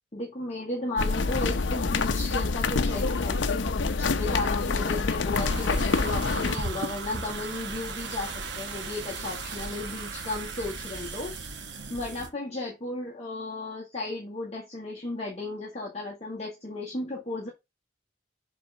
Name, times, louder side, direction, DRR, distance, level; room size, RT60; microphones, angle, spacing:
voice 1, 0.1-11.3 11.9-17.5, left 2 dB, 35° left, 1.9 m, -34 dB
sound 1, 1.0-6.6, left 4 dB, 80° left, 0.7 m, -26 dB
sound 2, 5.3-12.3, right 3 dB, 70° right, 1.4 m, -36 dB
7.3 x 3.5 x 5.6 m
head